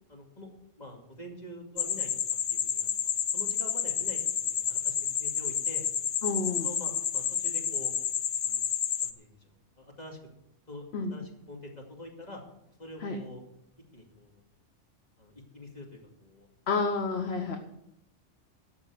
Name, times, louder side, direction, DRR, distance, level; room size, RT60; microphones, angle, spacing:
voice 1, 0.1-0.5 0.8-2.1 2.5-5.9 6.6-7.9 8.4-8.6 9.0-10.2 10.7-10.9 11.1-12.4 12.8-13.4 13.9-14.4 15.2-16.5, left 1 dB, 35° left, 0 dB, 2.6 m, -46 dB
sound 1, 1.8-9.1, left 9 dB, 75° left, 1.1 m, -30 dB
voice 2, 6.2-6.7 10.9-11.2 13.0-13.2 16.7-17.6, left 4 dB, 60° left, 4 dB, 1.3 m, -30 dB
13.5 x 5.9 x 9.1 m, 0.82 s
omnidirectional pair, 1.3 m